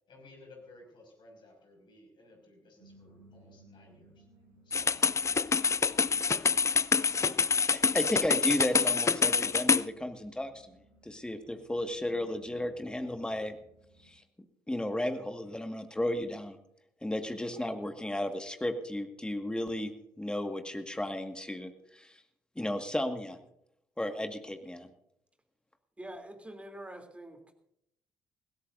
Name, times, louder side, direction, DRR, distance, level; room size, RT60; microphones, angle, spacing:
voice 1, 0.1-4.3 4.6-4.9, left 2 dB, 50° left, 2 dB, 6.2 m, -56 dB
sound 1, 2.8-14.1, right 2 dB, 80° right, 5.5 m, -61 dB
sound 2, 4.7-9.9, left 5 dB, 30° left, 0.5 m, -26 dB
voice 2, 7.7-13.6 14.0-14.2 14.7-16.6 17.0-22.2 22.6-23.4 24.0-24.9, left 1 dB, 10° left, 7 dB, 2.0 m, -34 dB
voice 3, 26.0-27.5, right 1 dB, 10° right, 4 dB, 3.3 m, -45 dB
21.0 x 16.5 x 2.7 m, 0.76 s
figure-of-eight pair, 45°, 10 cm